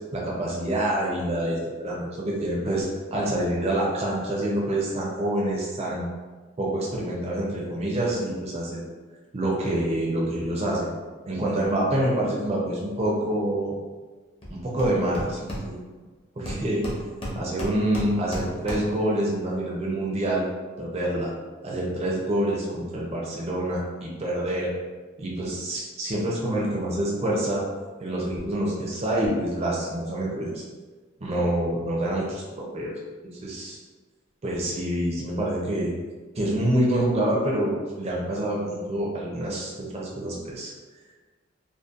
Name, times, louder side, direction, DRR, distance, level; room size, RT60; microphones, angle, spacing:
voice 1, 0.1-6.1 6.6-8.8 9.3-10.9 11.3-13.7 14.5-15.8 16.4-16.8 17.4-20.4 20.8-21.3 21.6-24.7 25.2-27.6 28.0-30.6 31.2-32.9 33.4-33.8 34.4-35.9 36.4-40.7, right 1 dB, 30° right, -4 dB, 0.4 m, -27 dB
Hammer, 14.4-14.5 14.8-16.1 16.5-19.1, equal, 25° left, 0.5 m, -33 dB
2.5 x 2.1 x 2.4 m, 1.3 s
head